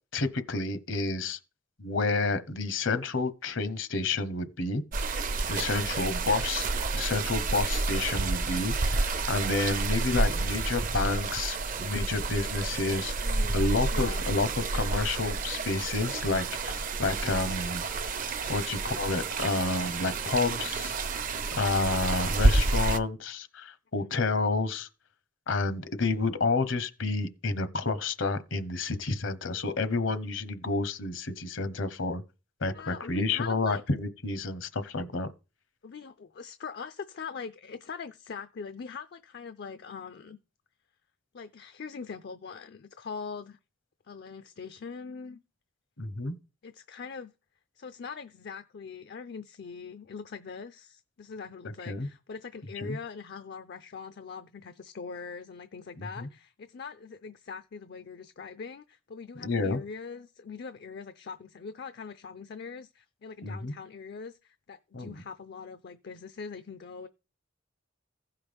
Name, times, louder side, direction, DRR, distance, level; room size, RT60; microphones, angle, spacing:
voice 1, 0.1-1.4 1.8-4.8 5.5-6.7 6.9-13.1 13.5-17.8 18.5-21.0 21.5-24.9 25.5-32.2 32.6-35.3 46.0-46.3 51.9-52.1 52.8-53.0 56.0-56.3 59.4-59.8 63.4-63.7 64.9-65.2, left 3 dB, 70° left, 0.9 m, -30 dB
sound 1, 4.9-23.0, right 3 dB, 45° right, 0.6 m, -29 dB
voice 2, 13.2-13.6 13.9-14.2 24.0-24.1 32.7-33.8 35.8-40.4 41.3-43.6 44.1-45.4 46.6-47.3 47.8-67.1, left 5 dB, 55° left, 0.5 m, -42 dB
15.5 x 5.7 x 3.5 m
head